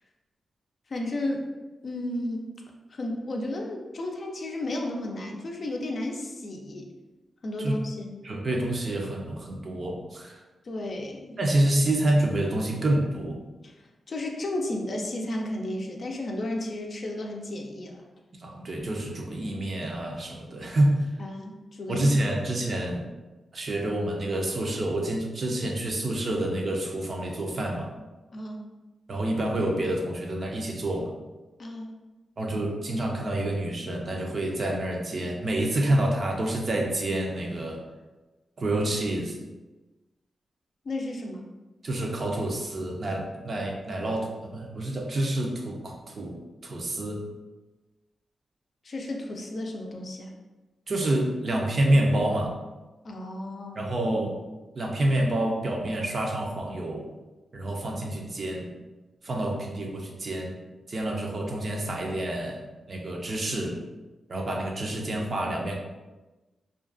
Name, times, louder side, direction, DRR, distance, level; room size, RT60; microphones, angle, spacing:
voice 1, 0.9-1.5 1.8-2.5 2.9-6.9 7.4-8.3 10.6-11.4 13.6-13.7 14.1-18.0 21.2-22.1 28.3-28.7 31.6-31.9 40.8-41.5 48.8-50.3 53.0-53.9, left 1 dB, 55° left, 1 dB, 0.4 m, -33 dB
voice 2, 8.2-10.4 11.4-13.4 18.4-20.9 21.9-23.1 23.5-27.9 29.1-31.2 32.4-37.8 38.6-39.4 41.8-47.2 50.9-52.6 53.8-54.4 54.7-57.1 57.5-58.7 59.2-60.5 60.9-63.8 64.3-65.8, right 1 dB, 55° right, 0 dB, 0.5 m, -28 dB
2.4 x 2.2 x 2.4 m, 1.1 s
cardioid pair, 70°, 0 cm